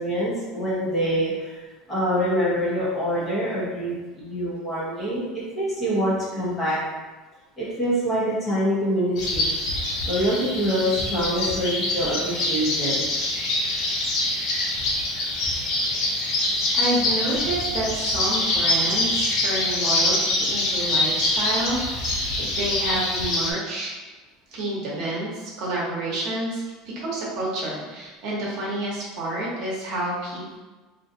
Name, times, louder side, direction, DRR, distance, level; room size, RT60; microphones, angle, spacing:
voice 1, 0.0-5.3 5.6-6.8 7.6-9.5 10.1-13.1, equal, 15° left, -8 dB, 0.8 m, -25 dB
sound 1, 9.2-23.5, left 2 dB, 45° left, 0.6 m, -25 dB
voice 2, 16.7-23.9 24.5-26.6 26.9-30.6, right 1 dB, 45° right, -5 dB, 0.9 m, -29 dB
3.7 x 2.5 x 2.7 m, 1.2 s
cardioid pair, 180°, 0 cm